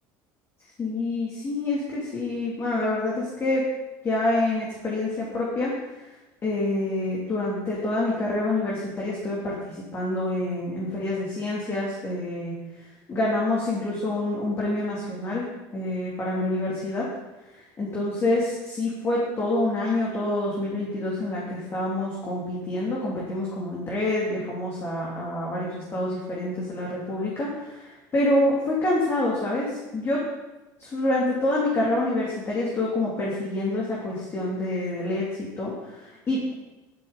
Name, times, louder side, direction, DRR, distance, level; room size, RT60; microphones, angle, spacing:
voice 1, 0.8-3.6 4.0-5.7 6.4-12.5 13.1-15.4 15.7-17.1 17.5-30.2 30.8-36.5, left 2 dB, 25° left, -5 dB, 3.1 m, -27 dB
12.5 x 12.0 x 4.2 m, 1.1 s
cardioid pair, 145°, 10 cm